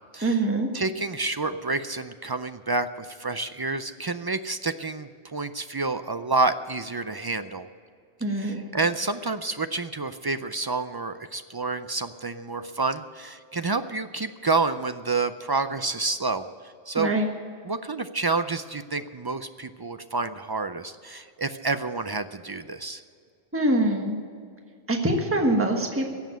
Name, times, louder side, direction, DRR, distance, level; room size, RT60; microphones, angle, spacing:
voice 1, 0.2-0.7 8.2-8.7 16.9-17.3 23.5-24.2 24.9-26.1, right 1 dB, 15° right, 2 dB, 1.4 m, -24 dB
voice 2, 0.7-7.7 8.3-17.1 17.6-23.0, right 3 dB, 40° right, 10 dB, 0.3 m, -29 dB
16.5 x 7.3 x 9.0 m, 2.3 s
omnidirectional pair, 1.1 m